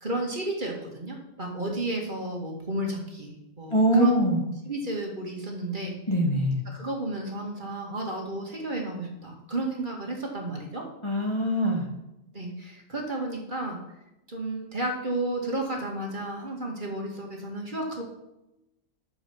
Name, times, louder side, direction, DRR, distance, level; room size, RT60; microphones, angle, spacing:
voice 1, 0.0-4.1 4.7-6.0 6.7-10.8 12.3-13.8 14.3-18.0, right 1 dB, 35° right, 0 dB, 2.2 m, -32 dB
voice 2, 3.7-4.4 6.1-6.6 11.0-11.9, equal, 20° left, -1 dB, 1.8 m, -23 dB
10.0 x 6.9 x 7.1 m, 0.90 s
omnidirectional pair, 1.4 m